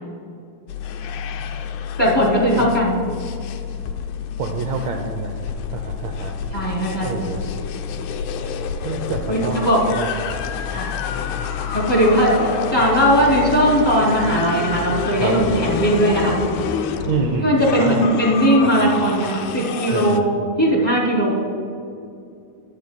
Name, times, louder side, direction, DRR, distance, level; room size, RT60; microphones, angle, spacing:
sound 1, 0.7-20.2, left 7 dB, 80° left, 1.7 m, -28 dB
voice 1, 2.0-2.9 6.5-7.2 9.3-9.9 10.7-10.9 11.7-16.3 17.4-21.3, equal, 10° left, -5 dB, 2.3 m, -18 dB
voice 2, 4.4-5.4 5.7-6.3 7.0-7.4 8.8-10.1 15.2-15.6 17.1-18.1 18.6-19.0 19.9-20.3, right 5 dB, 90° right, 3 dB, 1.5 m, -27 dB
20.0 x 12.0 x 2.3 m, 2.5 s
omnidirectional pair, 4.1 m